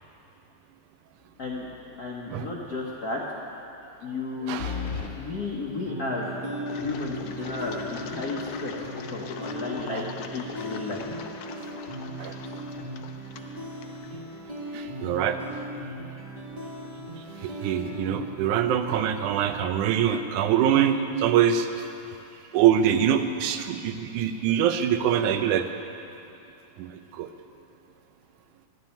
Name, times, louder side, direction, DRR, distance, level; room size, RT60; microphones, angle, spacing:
sound 1, 1.5-1.9 2.3-2.4 4.6-5.1, left 6 dB, 35° left, 1.6 m, -33 dB
voice 1, 2.0-3.2 4.0-4.6 5.1-6.3 6.8-8.7 9.1-10.1 10.3-11.0, left 3 dB, 65° left, -3 dB, 0.9 m, -33 dB
voice 2, 4.4-4.8 9.9-10.1 12.2-12.4 14.7-15.4 17.4-21.8 22.5-25.7 26.8-27.3, right 9 dB, 85° right, 8 dB, 2.2 m, -24 dB
sound 2, 5.9-20.9, equal, 55° right, 0.4 m, -38 dB
Engine, 6.7-14.4, left 7 dB, 80° left, 1.3 m, -41 dB
13.5 x 7.5 x 10.0 m, 2.8 s
omnidirectional pair, 3.5 m